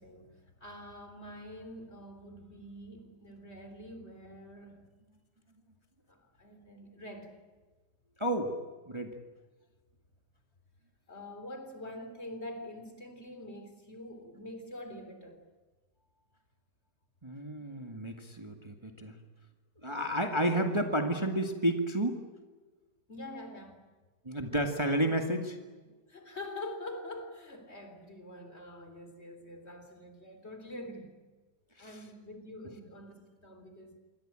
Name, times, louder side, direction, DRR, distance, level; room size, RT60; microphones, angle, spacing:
voice 1, 0.0-4.9 6.1-7.3 11.1-15.4 23.1-23.8 26.1-31.2 31.8-34.0, left 1 dB, 35° left, 4.0 m, -45 dB
voice 2, 8.2-8.5 8.9-9.1 17.2-19.2 19.8-22.2 24.3-25.6 31.8-31.9, right 1 dB, 15° right, 2.0 m, -31 dB
27.5 x 23.0 x 9.0 m
omnidirectional pair, 1.8 m